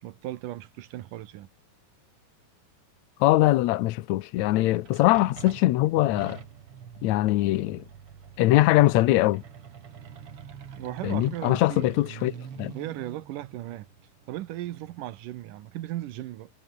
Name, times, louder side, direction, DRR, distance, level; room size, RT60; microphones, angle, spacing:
voice 1, 0.0-1.5 10.8-11.9 12.7-13.9 14.3-16.5, right 14 dB, 70° right, 2.4 m, -36 dB
voice 2, 3.2-6.4 7.0-7.8 8.4-9.4 11.0-12.3 12.6-12.7, left 16 dB, 80° left, 1.6 m, -22 dB
sound 1, 4.6-15.0, right 7 dB, 45° right, 2.5 m, -45 dB
omnidirectional pair, 4.2 m